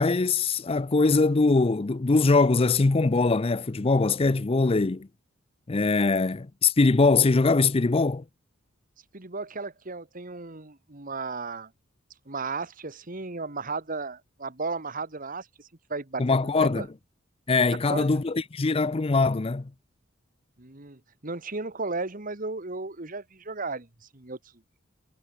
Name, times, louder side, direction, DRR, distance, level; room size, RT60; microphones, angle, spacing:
voice 1, 0.0-5.1 5.7-8.2 16.2-16.9 17.5-19.7, left 3 dB, 30° left, 0.5 m, -22 dB
voice 2, 9.1-11.7 12.2-16.9 17.7-18.2 20.6-24.4, right 3 dB, 40° right, 1.7 m, -35 dB
head